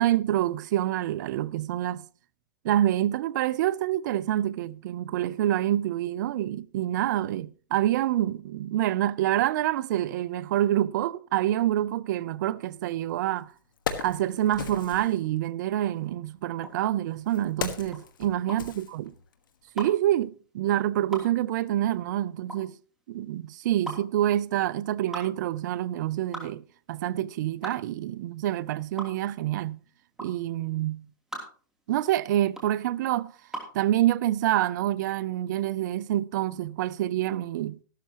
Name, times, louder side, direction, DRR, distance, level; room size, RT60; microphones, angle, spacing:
voice 1, 0.0-2.0 2.6-13.5 14.0-19.0 19.8-22.7 23.1-29.8 30.2-31.1 31.9-33.3 33.7-37.8, right 13 dB, 65° right, 0.6 m, -27 dB
Wood, 13.0-13.1 13.5-15.2 16.2-19.5 19.8-19.9, left 7 dB, 85° left, 1.6 m, -37 dB
sound 1, 16.6-33.8, right 1 dB, 5° right, 3.2 m, -41 dB
14.0 x 12.5 x 3.0 m
hypercardioid pair, 135°, 11 cm